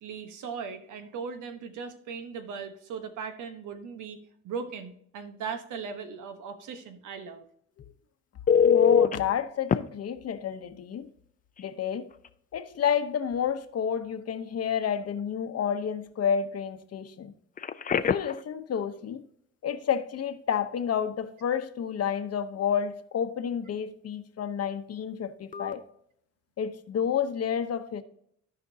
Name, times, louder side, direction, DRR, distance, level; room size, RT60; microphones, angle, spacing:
voice 1, 0.0-7.4, right 6 dB, 80° right, 1.1 m, -38 dB
Telephone, 8.5-9.2 9.7-9.8 11.6-11.7 12.1-12.3 17.6-18.4 25.5-25.7, left 7 dB, 30° left, 0.5 m, -22 dB
voice 2, 8.6-11.1 11.6-12.1 12.5-17.3 17.9-19.2 19.6-25.8 26.6-28.0, left 8 dB, 55° left, 0.9 m, -30 dB
15.0 x 5.2 x 2.8 m
cardioid pair, 90°, 30 cm